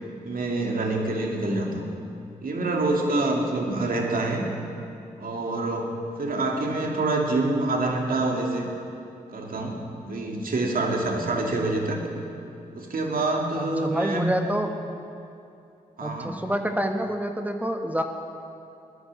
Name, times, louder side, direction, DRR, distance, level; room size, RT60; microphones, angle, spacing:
voice 1, 0.2-1.8 2.4-4.4 5.2-8.7 9.3-12.0 12.7-14.3 16.0-16.4, right 2 dB, 60° right, 1 dB, 2.7 m, -26 dB
voice 2, 13.6-14.8 16.0-18.0, equal, 10° right, 4 dB, 1.5 m, -27 dB
17.5 x 10.5 x 7.5 m, 2.6 s
supercardioid pair, 40°, 17 cm